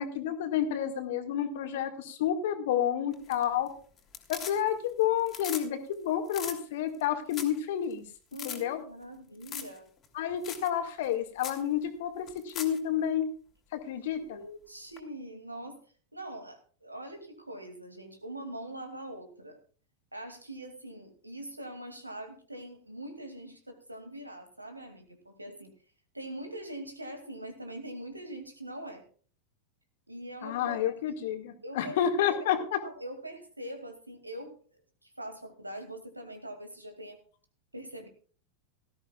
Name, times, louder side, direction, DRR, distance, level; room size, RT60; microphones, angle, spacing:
voice 1, 0.0-3.7 4.3-8.0 8.4-8.8 10.1-13.3 13.7-14.4 30.4-32.8, left 9 dB, 55° left, 7 dB, 1.9 m, -30 dB
sound 1, 3.1-3.7 4.0-4.9 5.2-5.7 5.9-6.0 6.3-6.6 7.0-7.1 7.3-7.6 7.9-8.0 8.3-8.6 9.4-9.8 10.0-10.1 10.4-10.7 11.0-11.1 11.4-11.6 12.3-12.8 15.0-15.1, left 8 dB, 25° left, 2.6 m, -39 dB
voice 2, 8.3-9.9 14.0-15.8 16.1-19.6 20.1-25.7 26.1-29.0 30.1-31.2 31.6-32.0 32.3-32.4 32.8-37.2 37.7-38.1, right 1 dB, 85° right, 7 dB, 2.5 m, -43 dB
18.0 x 13.5 x 2.4 m, 0.41 s
figure-of-eight pair, 90°, 0 cm